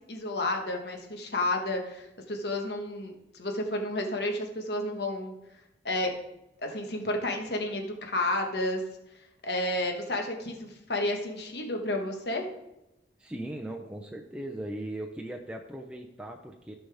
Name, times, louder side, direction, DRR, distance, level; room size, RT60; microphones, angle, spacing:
voice 1, 0.1-5.3 5.8-6.1 6.6-8.8 9.4-12.4, left 1 dB, 60° left, 3 dB, 1.4 m, -31 dB
voice 2, 13.2-16.7, right 1 dB, 5° right, 0 dB, 0.6 m, -38 dB
15.0 x 5.6 x 3.5 m, 0.92 s
head